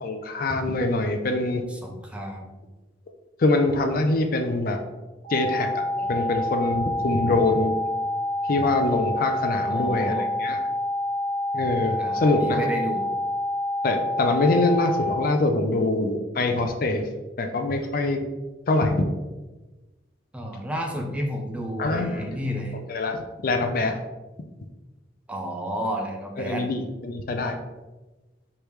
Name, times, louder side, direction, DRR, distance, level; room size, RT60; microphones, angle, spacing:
voice 1, 0.0-1.6 3.4-4.8 5.3-7.7 8.5-10.1 10.4-10.6 11.5-12.7 13.8-17.0 17.4-18.2 18.7-19.1 21.8-22.2 22.9-24.0 26.4-27.5, left 2 dB, 50° left, 5 dB, 0.4 m, -24 dB
voice 2, 1.7-2.6 9.7-10.3 12.0-13.1 20.3-22.8 25.3-26.7, equal, 5° right, 1 dB, 0.4 m, -31 dB
sound 1, 5.2-15.2, left 1 dB, 35° left, 1.3 m, -27 dB
4.7 x 3.3 x 3.1 m, 1.1 s
head